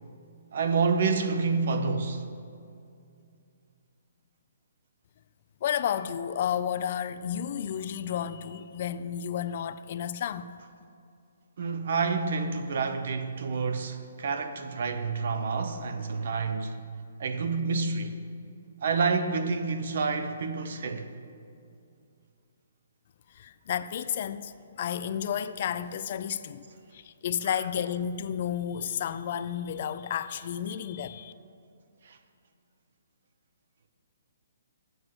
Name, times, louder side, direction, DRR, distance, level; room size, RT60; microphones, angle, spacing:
voice 1, 0.5-2.3 11.6-16.8 17.2-18.2 18.8-21.1 32.0-32.2, right 4 dB, 55° right, 0.7 m, -28 dB
voice 2, 5.6-10.5 23.3-24.5 24.8-26.7 26.9-31.3, left 9 dB, 40° left, 0.3 m, -32 dB
7.9 x 6.3 x 7.5 m
hypercardioid pair, 170°, 0 cm